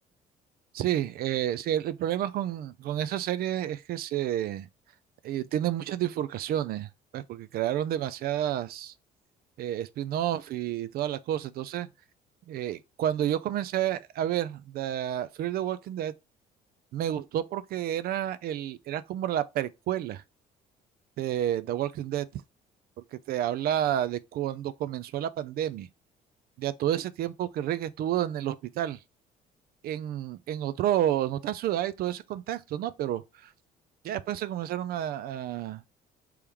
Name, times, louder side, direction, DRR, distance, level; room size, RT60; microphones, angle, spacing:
voice 1, 0.7-4.7 5.2-8.9 9.6-11.9 12.5-16.1 16.9-20.2 21.2-22.3 23.1-25.9 26.6-29.0 29.8-33.5 34.0-35.8, right 11 dB, 65° right, 0.4 m, -30 dB
3.5 x 3.0 x 3.4 m
cardioid pair, 110°, 17 cm